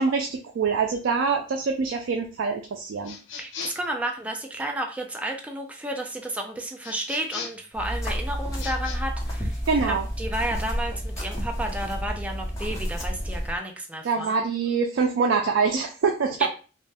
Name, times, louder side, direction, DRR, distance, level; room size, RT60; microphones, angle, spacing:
voice 1, 0.0-3.2 9.7-10.1 14.0-16.5, right 5 dB, 85° right, 3 dB, 0.4 m, -24 dB
sound 1, 3.0-3.9 6.8-7.7 8.5-9.0, left 6 dB, 80° left, 0.6 m, -38 dB
voice 2, 3.4-9.6 9.9-14.4 16.4-16.5, right 1 dB, 5° right, 2 dB, 0.4 m, -32 dB
sound 2, 7.7-13.5, equal, 15° left, 0.8 m, -30 dB
2.5 x 2.1 x 3.3 m, 0.36 s
head